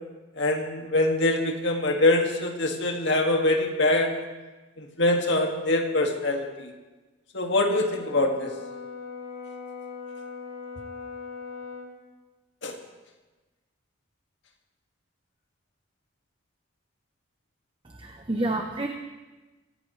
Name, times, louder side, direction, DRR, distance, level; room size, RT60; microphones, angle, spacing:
voice 1, 0.4-4.1 4.8-6.7 7.3-8.5 12.6-12.7, left 2 dB, 55° left, 2 dB, 2.1 m, -24 dB
Brass instrument, 7.7-11.9, left 5 dB, 90° left, 2.7 m, -40 dB
voice 2, 17.9-18.9, right 1 dB, 25° right, 3 dB, 0.9 m, -29 dB
25.5 x 16.5 x 3.2 m, 1.2 s
head